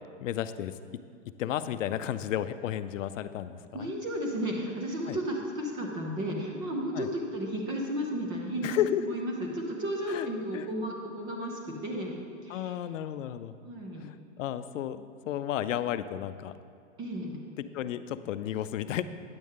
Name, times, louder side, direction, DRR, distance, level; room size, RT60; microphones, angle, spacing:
voice 1, 0.2-0.7 1.4-3.9 5.1-5.2 6.9-7.1 8.6-9.2 10.1-10.3 10.5-10.7 12.5-13.6 14.0-16.5 17.2-17.3 17.7-19.0, left 11 dB, 80° left, 13 dB, 0.5 m, -33 dB
voice 2, 3.7-12.8 13.6-14.1 17.0-17.4, equal, 15° right, 0 dB, 0.3 m, -33 dB
9.6 x 7.6 x 3.6 m, 2.3 s
hypercardioid pair, 140°, 38 cm